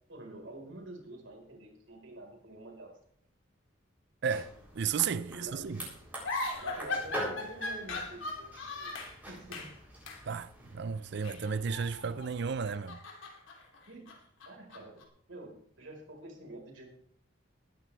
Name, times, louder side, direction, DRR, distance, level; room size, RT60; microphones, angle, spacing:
voice 1, 0.1-2.9 5.3-6.2 6.6-8.9 9.2-9.7 13.9-14.2 14.4-15.0 15.3-16.9, right 2 dB, 75° right, 4.7 m, -48 dB
sound 1, 4.2-12.8, equal, 10° right, 7.5 m, -45 dB
voice 2, 4.2-5.8 10.3-13.0, right 6 dB, 60° right, 0.5 m, -33 dB
sound 2, 6.2-9.2 9.5-9.8 10.1-10.3 11.2-12.3 12.7-15.0, left 3 dB, 75° left, 3.0 m, -39 dB
20.0 x 13.0 x 3.4 m
head